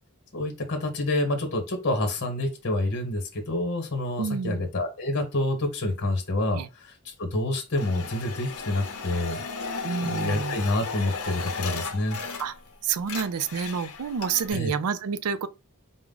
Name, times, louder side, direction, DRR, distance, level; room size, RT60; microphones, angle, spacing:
voice 1, 0.3-9.4 10.0-12.2 14.5-14.7, left 1 dB, 55° left, 1.1 m, -28 dB
voice 2, 4.2-4.6 6.5-6.7 9.8-10.6 12.4-12.5 12.8-15.5, right 6 dB, 80° right, 0.4 m, -29 dB
sound 1, 7.8-12.7 13.0-14.5, left 4 dB, 70° left, 0.7 m, -35 dB
4.6 x 2.1 x 3.7 m
head